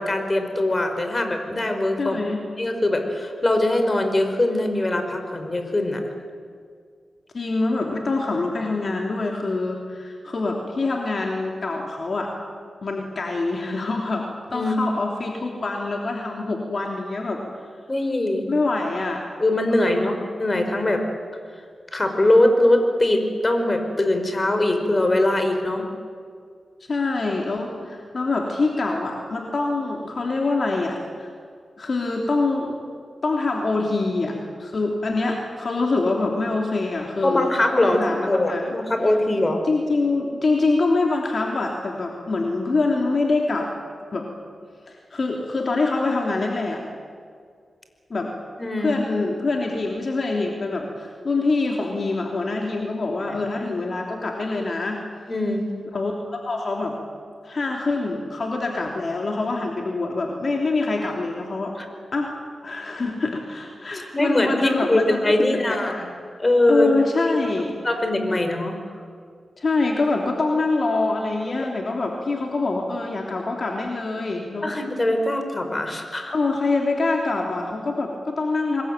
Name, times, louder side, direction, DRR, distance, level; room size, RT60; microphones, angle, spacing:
voice 1, 0.0-2.2 2.6-6.0 14.5-14.7 17.9-18.5 19.4-21.0 21.9-25.9 37.2-38.0 38.3-39.6 48.6-49.0 55.3-55.6 61.8-61.9 64.1-66.1 66.4-66.9 67.2-67.4 67.8-68.8 74.6-76.3, left 1 dB, 30° left, 6 dB, 4.9 m, -22 dB
voice 2, 2.0-2.4 7.3-12.3 12.8-17.4 18.5-19.2 19.7-20.1 26.8-31.3 31.8-32.7 33.2-38.7 39.6-43.7 44.1-44.3 44.9-46.8 48.1-48.3 48.8-55.0 55.9-57.0 57.4-61.7 62.1-62.3 62.6-66.0 66.7-68.0 69.6-74.7 76.3-78.8, left 3 dB, 55° left, 1 dB, 3.3 m, -25 dB
26.5 x 21.5 x 9.1 m, 2.1 s
cardioid pair, 75°, 0 cm